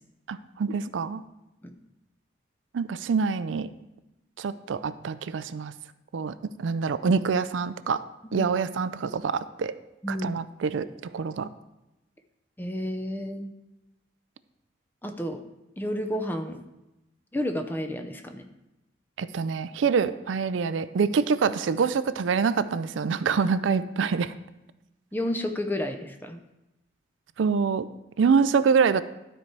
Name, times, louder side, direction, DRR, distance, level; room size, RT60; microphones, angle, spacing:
voice 1, 0.3-1.2 2.7-3.7 4.4-5.7 6.1-8.0 8.3-9.7 10.1-11.5 19.2-24.3 27.4-27.9 28.2-29.0, right 5 dB, 85° right, 14 dB, 0.4 m, -25 dB
voice 2, 12.6-13.5 15.0-15.4 15.8-16.6 17.3-18.4 25.1-26.4, left 1 dB, 10° left, 6 dB, 0.5 m, -31 dB
12.0 x 4.5 x 4.6 m, 0.96 s
head